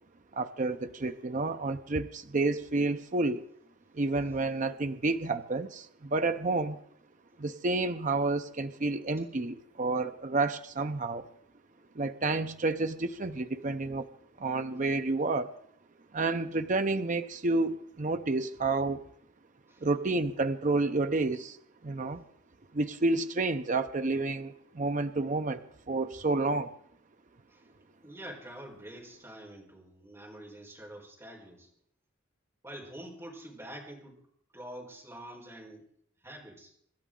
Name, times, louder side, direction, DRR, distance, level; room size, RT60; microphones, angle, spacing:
voice 1, 0.3-3.4 3.9-6.8 7.4-11.3 11.9-14.1 14.4-15.5 16.1-19.1 19.8-21.6 21.8-22.2 22.7-26.7, right 3 dB, 40° right, 8 dB, 0.6 m, -30 dB
voice 2, 28.0-31.7 32.6-34.2 34.5-35.9 36.2-36.7, right 1 dB, 15° right, -2 dB, 4.4 m, -46 dB
26.0 x 12.0 x 3.8 m, 0.67 s
head